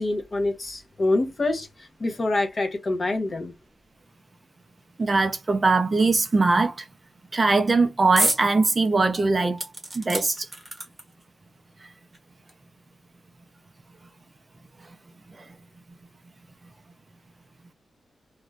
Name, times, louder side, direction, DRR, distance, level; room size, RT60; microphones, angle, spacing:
voice 1, 0.0-3.5, left 2 dB, 30° left, 0.6 m, -26 dB
voice 2, 5.0-6.9 7.3-9.6 9.9-10.5 15.3-15.5, right 3 dB, 25° right, 0.4 m, -21 dB
sound 1, 8.2-8.5 8.9-9.0 9.6-11.2 12.1-12.2 12.5-12.6, right 1 dB, 10° right, 0.9 m, -28 dB
2.4 x 2.2 x 3.1 m
wide cardioid pair, 175°, 0 cm